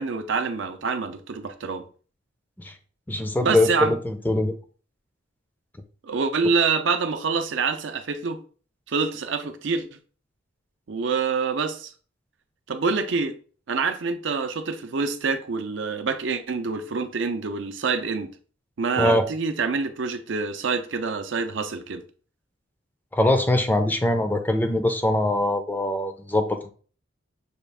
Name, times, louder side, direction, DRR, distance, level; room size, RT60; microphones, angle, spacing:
voice 1, 0.0-1.8 3.4-3.9 6.0-8.4 8.9-10.0 10.9-11.9 12.7-13.4 13.7-18.3 18.8-22.0, right 4 dB, 70° right, 0.5 m, -26 dB
voice 2, 3.1-4.5 19.0-19.2 23.1-26.7, left 1 dB, 10° left, 0.4 m, -22 dB
6.2 x 2.4 x 3.4 m
head